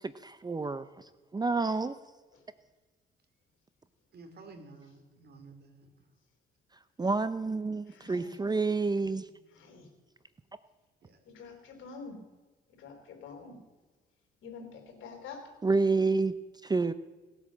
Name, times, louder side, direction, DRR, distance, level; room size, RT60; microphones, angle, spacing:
voice 1, 0.0-2.0 7.0-9.3 15.6-16.3 16.6-16.9, right 3 dB, 20° right, 13 dB, 0.7 m, -29 dB
voice 2, 4.1-6.1 8.9-9.8 11.0-11.2, right 3 dB, 55° right, 7 dB, 3.1 m, -53 dB
voice 3, 7.9-8.4 9.5-9.9 11.2-12.2 12.7-13.6 14.4-15.5, left 5 dB, 80° left, 4 dB, 4.0 m, -47 dB
18.5 x 8.4 x 7.5 m, 1.3 s
cardioid pair, 90°, 20 cm